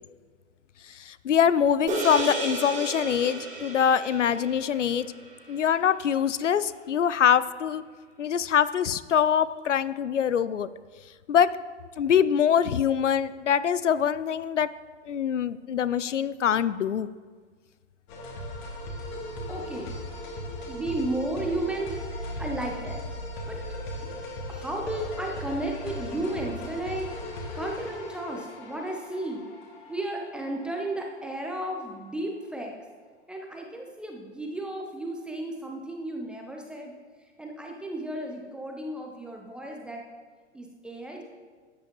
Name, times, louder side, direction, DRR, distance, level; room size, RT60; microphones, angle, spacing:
voice 1, 0.8-5.1 5.5-7.8 8.2-10.7 11.3-11.5 12.0-14.7 15.1-17.1, left 8 dB, 85° left, 16 dB, 0.5 m, -24 dB
sound 1, 1.9-6.4, right 3 dB, 20° right, 2.0 m, -34 dB
sound 2, 18.1-31.5, left 1 dB, 40° left, 2.2 m, -38 dB
voice 2, 19.5-19.9 20.7-22.0 22.4-23.0 23.5-23.6 24.0-24.1 24.5-27.1 27.5-29.5 29.9-32.7 33.3-36.9 37.4-40.0 40.5-41.2, right 1 dB, 5° right, 1 dB, 0.3 m, -33 dB
12.5 x 8.7 x 2.9 m, 1.5 s
figure-of-eight pair, 110°, 35 cm